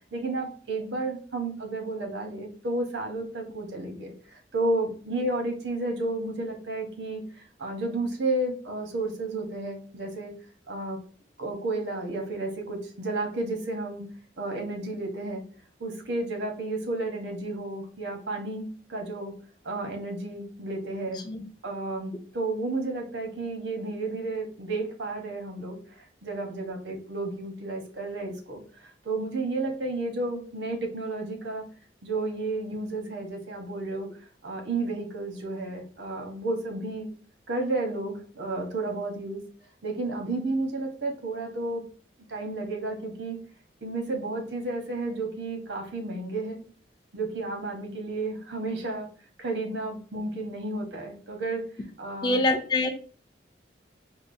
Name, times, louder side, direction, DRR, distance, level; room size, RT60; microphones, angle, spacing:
voice 1, 0.1-10.3 10.7-11.0 11.4-14.0 14.4-15.4 15.8-19.3 19.6-21.2 21.6-31.6 32.0-34.1 34.4-37.1 37.5-39.4 39.8-41.8 42.3-43.4 43.8-46.6 47.1-49.1 49.4-51.6 52.0-52.4, right 2 dB, 85° right, 3 dB, 0.9 m, -32 dB
voice 2, 52.2-52.9, left 2 dB, 25° left, 6 dB, 0.3 m, -24 dB
4.6 x 2.0 x 2.5 m, 0.41 s
head